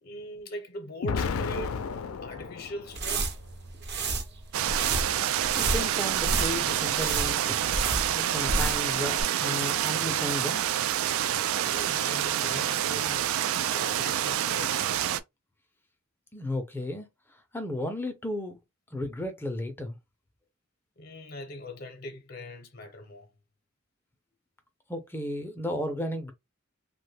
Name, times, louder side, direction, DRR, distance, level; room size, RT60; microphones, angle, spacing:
voice 1, 0.0-3.3 11.6-13.4 13.7-14.9 21.0-23.3, equal, 50° left, 0.7 m, -41 dB
Explosion, 1.0-3.2, left 5 dB, 90° left, 0.4 m, -32 dB
sound 1, 2.8-8.9 9.2-9.3, right 3 dB, 55° right, 0.7 m, -31 dB
sound 2, 4.5-15.2, right 11 dB, 80° right, 0.3 m, -27 dB
voice 2, 5.5-7.7 8.1-10.6 16.3-17.1 17.5-18.6 18.9-20.0 24.9-26.3, left 1 dB, 10° left, 0.5 m, -34 dB
2.9 x 2.2 x 3.2 m
head